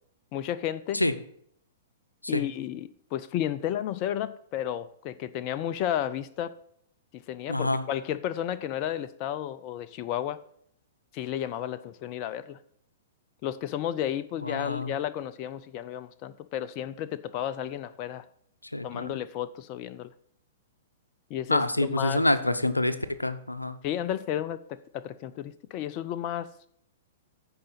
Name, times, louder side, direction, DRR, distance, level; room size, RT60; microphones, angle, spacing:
voice 1, 0.3-1.0 2.3-6.5 7.3-10.4 11.1-12.6 13.4-18.2 18.8-20.1 21.3-22.2 23.8-26.5, left 11 dB, 40° left, 13 dB, 0.5 m, -32 dB
voice 2, 7.5-7.8 14.4-14.9 18.7-19.2 21.5-23.8, left 1 dB, 90° left, 12 dB, 0.7 m, -27 dB
15.0 x 5.0 x 4.0 m, 0.67 s
figure-of-eight pair, 110°, 0 cm